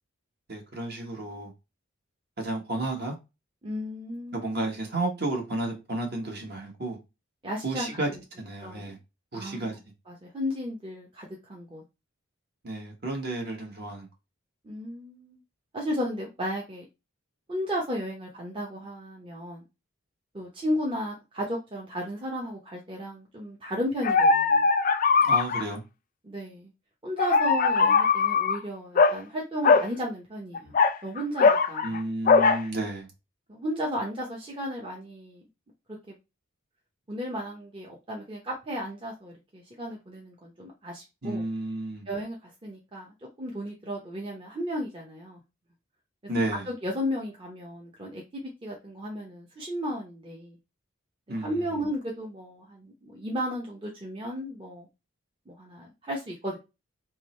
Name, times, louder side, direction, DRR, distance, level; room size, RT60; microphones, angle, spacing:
voice 1, 0.5-1.5 2.4-3.2 4.3-7.0 7.6-8.1 8.4-9.0 9.3-9.8 12.6-14.1 25.2-25.8 31.8-33.1 41.2-42.1 46.3-46.7 51.3-51.8, right 2 dB, 50° right, 1.4 m, -32 dB
voice 2, 3.6-4.7 7.4-8.2 8.6-9.0 9.3-9.8 10.1-11.8 14.6-15.4 15.7-16.8 17.5-19.6 20.3-24.7 26.2-26.7 27.0-30.7 31.0-32.1 33.5-35.4 37.1-41.4 42.1-45.4 46.7-50.6 51.3-54.9 55.5-56.6, equal, 25° right, 0.8 m, -34 dB
sound 1, 24.0-25.6 27.2-28.6 29.0-29.2 29.6-29.9 30.5-32.0 32.3-32.6, left 4 dB, 40° left, 0.4 m, -20 dB
3.6 x 3.0 x 4.3 m
head